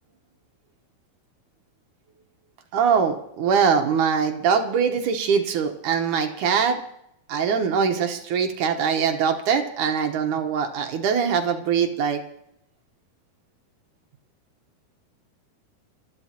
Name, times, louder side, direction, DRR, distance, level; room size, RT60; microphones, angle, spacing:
voice 1, 2.7-6.8 7.3-12.2, right 6 dB, 65° right, 4 dB, 2.3 m, -22 dB
23.5 x 13.5 x 2.9 m, 0.75 s
omnidirectional pair, 4.3 m